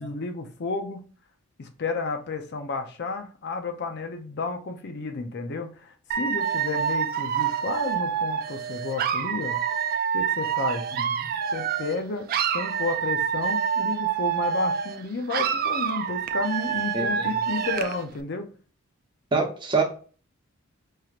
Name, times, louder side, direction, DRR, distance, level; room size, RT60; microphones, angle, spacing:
voice 1, 0.0-1.0 1.6-9.6 10.1-10.8 11.5-18.5, left 3 dB, 50° left, 0.5 m, -32 dB
Dog / Alarm, 6.1-12.0 12.3-15.0 15.3-18.0, right 7 dB, 45° right, 0.3 m, -27 dB
voice 2, 16.9-17.3 19.3-19.8, right 4 dB, 20° right, 0.8 m, -25 dB
4.7 x 2.9 x 2.4 m
head